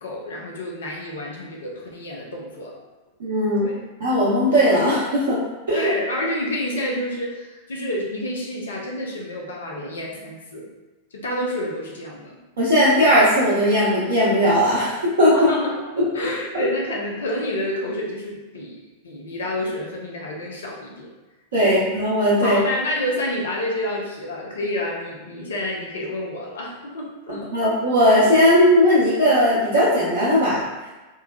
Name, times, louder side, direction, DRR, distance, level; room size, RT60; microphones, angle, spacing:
voice 1, 0.0-2.8 3.6-3.8 5.7-10.7 11.1-12.4 15.3-21.1 21.6-21.9 22.4-27.5, left 1 dB, 65° left, -2 dB, 0.6 m, -29 dB
voice 2, 3.2-3.7 4.0-5.4 5.7-5.9 12.6-15.3 16.0-16.1 16.5-16.7 21.5-22.6 27.5-30.6, equal, 60° right, -10 dB, 0.7 m, -18 dB
3.1 x 2.1 x 2.2 m, 1.2 s
figure-of-eight pair, 90°, 0 cm